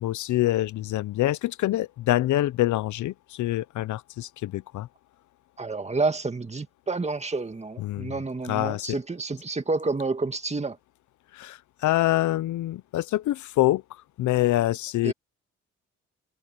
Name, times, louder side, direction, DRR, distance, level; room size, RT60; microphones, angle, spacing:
voice 1, 0.0-4.9 7.8-8.2 8.4-9.0 11.3-13.8 14.2-15.1, left 15 dB, 75° left, 0.7 m, -25 dB
voice 2, 5.6-10.8 15.0-15.1, right 3 dB, 20° right, 2.1 m, -29 dB
cardioid pair, 90°, 30 cm